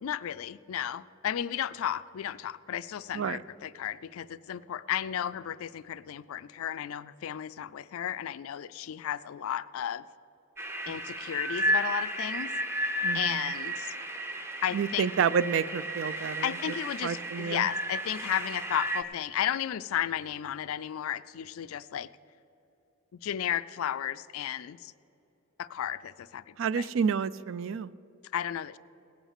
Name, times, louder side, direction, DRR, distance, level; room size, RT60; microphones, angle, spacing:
voice 1, 0.0-10.0 10.9-13.9 14.6-15.1 16.4-22.1 23.2-24.9 25.6-26.9 28.3-28.8, left 10 dB, 70° left, 15 dB, 0.3 m, -34 dB
sound 1, 10.6-19.0, right 1 dB, 10° right, 0.6 m, -33 dB
voice 2, 13.0-13.5 14.7-16.5 17.0-17.7 26.6-27.9, right 6 dB, 60° right, 18 dB, 0.3 m, -29 dB
18.0 x 6.1 x 6.6 m, 2.9 s
head